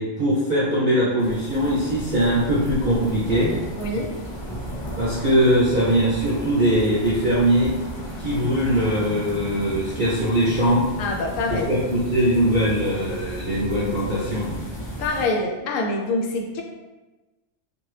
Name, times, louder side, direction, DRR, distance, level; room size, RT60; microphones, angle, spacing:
voice 1, 0.0-3.5 5.0-7.7 8.2-10.8 11.5-14.6, equal, 50° right, -9 dB, 0.7 m, -21 dB
sound 1, 1.2-15.3, equal, 30° left, 0.6 m, -34 dB
voice 2, 3.8-4.1 11.0-11.7 15.0-16.6, left 2 dB, 90° left, 1 dB, 1.0 m, -25 dB
2.7 x 2.5 x 3.2 m, 1.2 s
omnidirectional pair, 1.3 m